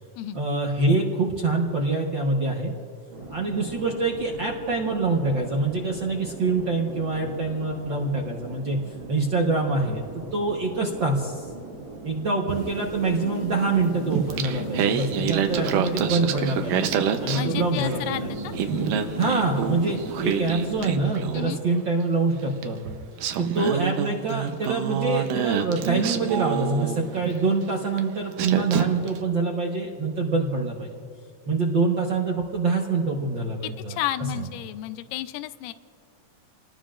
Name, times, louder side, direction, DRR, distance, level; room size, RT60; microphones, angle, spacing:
voice 1, 0.3-2.7 3.3-8.8 9.1-11.4 12.0-16.9 17.2-18.3 19.1-23.0 23.4-30.9 31.5-34.0 34.3-34.4, right 3 dB, 60° right, -1 dB, 1.2 m, -25 dB
sound 1, 3.1-21.5, right 3 dB, 40° right, 2.3 m, -40 dB
sound 2, 12.5-20.8, left 2 dB, 60° left, 1.2 m, -37 dB
Singing, 14.1-18.1 18.4-21.6 22.6-22.7 23.2-27.4 28.0-28.1 28.4-29.2, right 8 dB, 80° right, 2.4 m, -27 dB
voice 2, 17.3-18.5 21.3-21.6 33.6-35.7, left 13 dB, 80° left, 11 dB, 2.2 m, -32 dB
29.5 x 19.0 x 2.5 m, 2.3 s
omnidirectional pair, 3.9 m